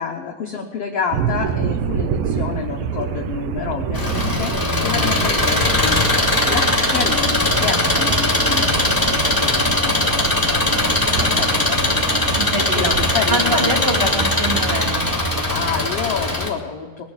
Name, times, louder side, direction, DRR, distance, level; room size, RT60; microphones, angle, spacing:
voice 1, 0.0-6.0 6.5-8.8 9.1-11.8 12.7-13.7 15.5-17.0, left 6 dB, 90° left, 2 dB, 1.3 m, -29 dB
sound 1, 1.1-15.9, right 7 dB, 75° right, 2.4 m, -28 dB
Engine, 3.9-16.5, left 2 dB, 5° left, 1.9 m, -20 dB
voice 2, 12.3-12.9 13.3-15.1, right 1 dB, 10° right, -1 dB, 2.4 m, -24 dB
21.5 x 7.5 x 7.3 m, 1.5 s
omnidirectional pair, 4.4 m